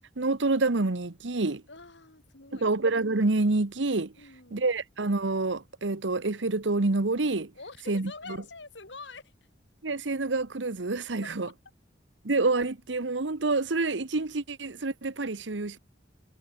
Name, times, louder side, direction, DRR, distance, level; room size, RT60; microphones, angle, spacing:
voice 1, 0.2-1.6 2.5-4.1 4.5-7.5 7.9-8.1 9.8-11.5 12.2-15.8, right 3 dB, 85° right, 1.2 m, -27 dB
voice 2, 1.7-2.7 4.2-4.7 7.5-9.3 11.2-11.5, left 3 dB, 75° left, 3.1 m, -46 dB
head